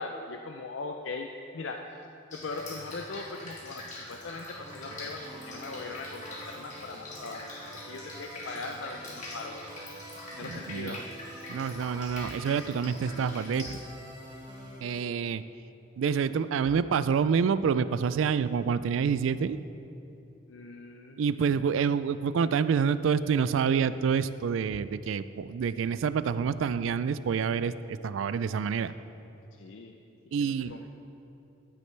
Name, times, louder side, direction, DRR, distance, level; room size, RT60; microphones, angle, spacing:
voice 1, 0.0-2.0 2.3-9.7 10.3-11.0 11.9-12.2 20.5-21.2 29.5-29.9 30.4-30.9, left 3 dB, 75° left, 3 dB, 0.5 m, -40 dB
Drip, 2.3-13.8, left 2 dB, 40° left, 2.0 m, -44 dB
sound 1, 4.6-14.8, right 1 dB, 20° right, 1.7 m, -47 dB
voice 2, 10.4-11.0 11.5-13.8 14.8-15.4 16.0-19.6 21.2-28.9 30.3-30.7, right 6 dB, 85° right, 15 dB, 0.3 m, -27 dB
13.5 x 9.7 x 3.3 m, 2.8 s
head